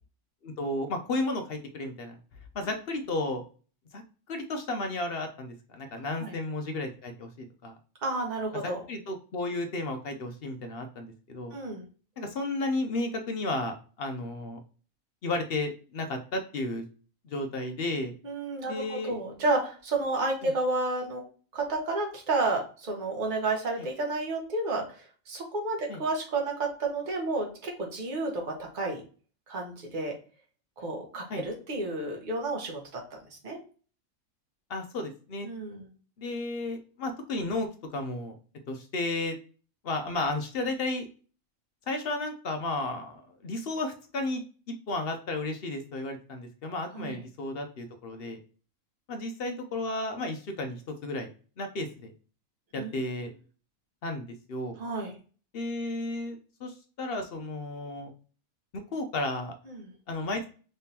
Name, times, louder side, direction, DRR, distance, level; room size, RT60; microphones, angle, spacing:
voice 1, 0.4-2.2 2.5-3.4 3.9-4.0 4.3-7.7 8.6-11.5 12.2-14.6 15.2-16.8 17.2-18.1 18.7-19.2 20.4-20.5 23.8-23.9 25.9-26.0 31.3-31.4 34.7-35.5 36.2-38.3 38.7-39.4 39.8-41.1 41.9-44.4 44.9-48.4 49.1-51.3 51.6-52.1 52.7-53.3 54.0-54.8 55.5-58.1 58.7-59.5 60.1-60.5, left 2 dB, 55° left, 5 dB, 0.7 m, -33 dB
voice 2, 8.0-8.8 11.5-11.9 18.2-21.2 21.5-29.0 29.5-30.1 30.8-33.0 33.4-33.6 35.4-35.9 46.9-47.2 52.8-52.9 54.8-55.1 59.7-59.9, right 2 dB, 35° right, -1 dB, 1.1 m, -31 dB
3.6 x 3.3 x 2.8 m, 0.38 s
omnidirectional pair, 1.5 m